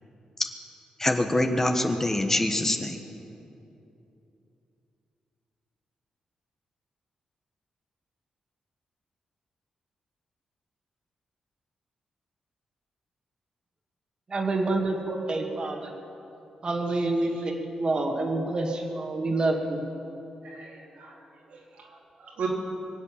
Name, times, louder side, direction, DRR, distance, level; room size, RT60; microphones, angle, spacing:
voice 1, 1.0-3.0, left 1 dB, 20° left, 5 dB, 1.3 m, -24 dB
voice 2, 14.3-15.9 16.6-19.8, right 2 dB, 40° right, 2 dB, 2.2 m, -27 dB
voice 3, 20.4-21.2 21.5-22.5, right 6 dB, 80° right, -3 dB, 3.5 m, -38 dB
24.0 x 8.2 x 7.4 m, 2.8 s
cardioid pair, 75°, 2 cm